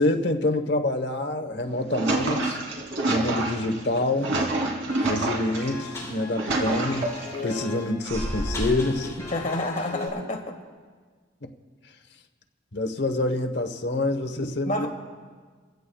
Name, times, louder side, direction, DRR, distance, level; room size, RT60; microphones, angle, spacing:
voice 1, 0.0-2.6 3.1-4.4 5.0-7.1 7.4-9.3 12.7-14.9, left 2 dB, 60° left, 5 dB, 1.1 m, -26 dB
sound 1, 1.6-5.7 6.1-7.4 8.0-8.8, right 2 dB, 80° right, 3.0 m, -28 dB
sound 2, 4.9-10.1, left 3 dB, 15° left, 4.2 m, -37 dB
voice 2, 9.3-10.5 14.7-14.9, left 1 dB, 40° left, 2 dB, 1.7 m, -28 dB
25.0 x 16.0 x 2.3 m, 1.5 s
head